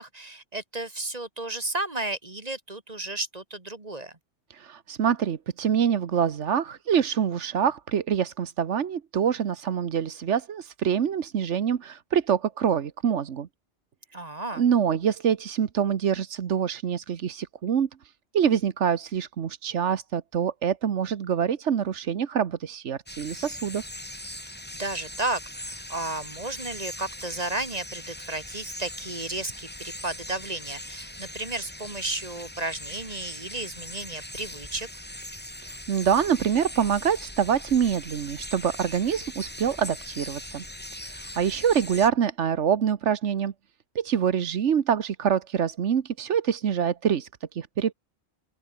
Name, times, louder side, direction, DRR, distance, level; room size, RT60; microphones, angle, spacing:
voice 1, 0.0-4.1 14.1-14.6 24.8-34.9, right 2 dB, 35° right, 2.2 m, -33 dB
voice 2, 4.5-13.5 14.5-17.9 18.3-23.8 35.6-40.6 41.0-43.5 43.9-47.9, right 8 dB, 85° right, 1.4 m, -25 dB
sound 1, 23.1-42.1, left 1 dB, 10° left, 2.0 m, -40 dB
open air
omnidirectional pair, 1.2 m